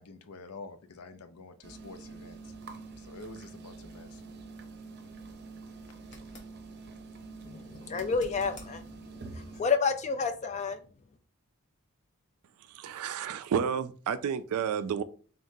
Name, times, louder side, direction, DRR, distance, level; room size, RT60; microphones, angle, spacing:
voice 1, 0.0-2.5 3.0-4.5, left 3 dB, 90° left, 0.6 m, -48 dB
sound 1, 1.6-9.6, right 3 dB, 50° right, 0.6 m, -46 dB
sound 2, 6.0-6.5 7.9-8.7 11.7-11.8, left 2 dB, 55° left, 1.2 m, -49 dB
voice 2, 7.4-10.8, left 5 dB, 30° left, 0.4 m, -30 dB
voice 3, 12.7-15.0, right 7 dB, 90° right, 0.3 m, -31 dB
3.7 x 3.6 x 2.7 m
head